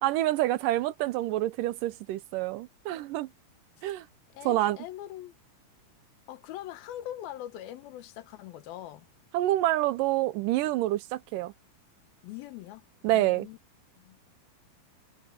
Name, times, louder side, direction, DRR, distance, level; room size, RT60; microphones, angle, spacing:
voice 1, 0.0-3.3 3.8-4.1 4.5-4.8 9.3-11.5 13.0-13.5, right 15 dB, 80° right, 2.1 m, -27 dB
voice 2, 4.3-5.3 6.3-9.1 12.2-12.9 13.1-13.6 14.0-14.2, left 13 dB, 90° left, 3.0 m, -42 dB
omnidirectional pair, 4.1 m